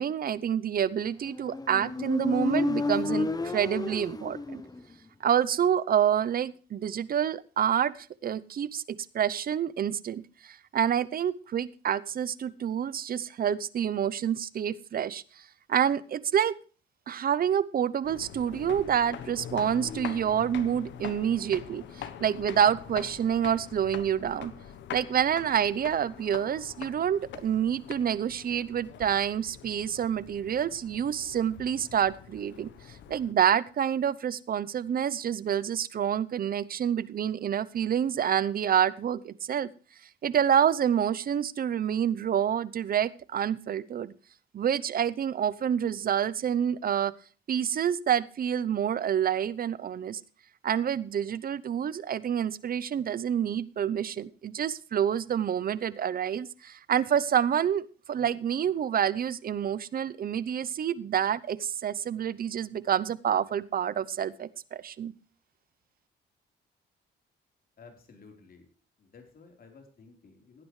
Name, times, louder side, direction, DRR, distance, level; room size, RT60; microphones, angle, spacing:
voice 1, 0.0-4.6 5.2-8.8 9.1-15.4 15.7-16.6 17.1-24.5 24.9-32.7 33.1-39.7 40.2-44.1 44.5-47.1 47.5-50.2 50.6-57.8 58.1-65.1, right 9 dB, 50° right, 19 dB, 0.7 m, -28 dB
Motorcycle, 1.3-4.9, left 3 dB, 20° left, 0.9 m, -31 dB
sound 1, 18.0-33.3, left 9 dB, 75° left, 1.1 m, -44 dB
voice 2, 67.8-68.7 69.0-70.6, left 4 dB, 55° left, 3 dB, 4.0 m, -53 dB
17.0 x 9.7 x 3.2 m, 0.38 s
cardioid pair, 90°, 19 cm